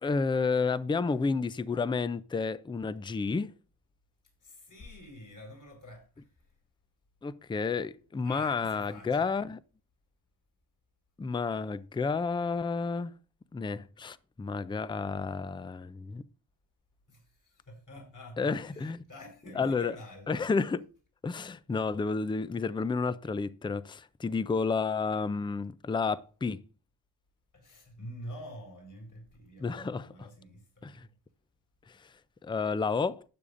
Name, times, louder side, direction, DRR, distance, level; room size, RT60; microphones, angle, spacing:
voice 1, 0.0-3.5 7.2-9.6 11.2-13.1 13.5-16.2 18.4-19.0 19.5-20.0 20.3-20.8 21.2-26.6 29.6-30.3 30.8-31.1 31.9-32.0 32.4-33.2, left 4 dB, 15° left, 0.3 m, -31 dB
voice 2, 4.4-6.3 8.2-9.5 17.1-20.4 27.5-31.1, equal, 45° left, 4.3 m, -47 dB
12.0 x 8.3 x 2.5 m
wide cardioid pair, 110°, 41 cm